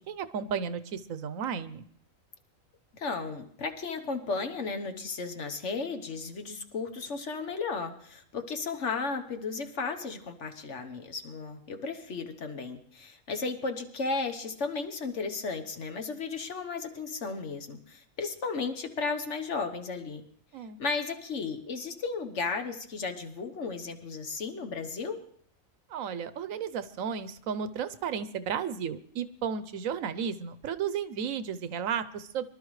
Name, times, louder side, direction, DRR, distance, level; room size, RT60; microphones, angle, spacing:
voice 1, 0.0-1.8 20.5-20.8 25.9-32.4, right 7 dB, 80° right, 13 dB, 1.2 m, -33 dB
voice 2, 2.9-20.2 20.8-25.2, left 4 dB, 60° left, 6 dB, 1.4 m, -34 dB
24.0 x 12.0 x 3.2 m, 0.62 s
omnidirectional pair, 1.4 m